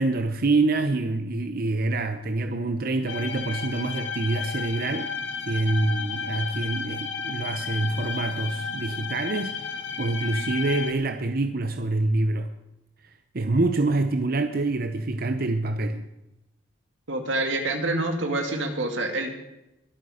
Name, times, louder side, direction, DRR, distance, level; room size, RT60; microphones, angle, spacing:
voice 1, 0.0-5.1 5.5-12.5 13.0-16.1, right 2 dB, 50° right, 8 dB, 0.7 m, -26 dB
sound 1, 3.1-10.9, left 5 dB, 75° left, 1.5 m, -33 dB
voice 2, 17.1-19.3, right 2 dB, 85° right, 4 dB, 2.3 m, -27 dB
22.5 x 8.4 x 5.0 m, 0.93 s
head